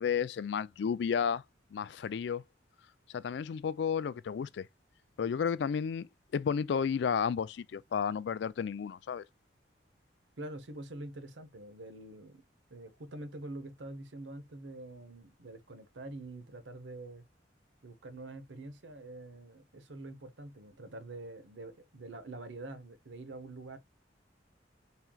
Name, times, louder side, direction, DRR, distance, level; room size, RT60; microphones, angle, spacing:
voice 1, 0.0-1.4 1.7-2.4 3.1-4.7 5.2-6.1 6.3-9.2, left 7 dB, 65° left, 0.3 m, -32 dB
voice 2, 10.4-12.4 12.7-17.2 17.8-23.8, right 2 dB, 75° right, 0.9 m, -45 dB
4.3 x 3.6 x 2.2 m
head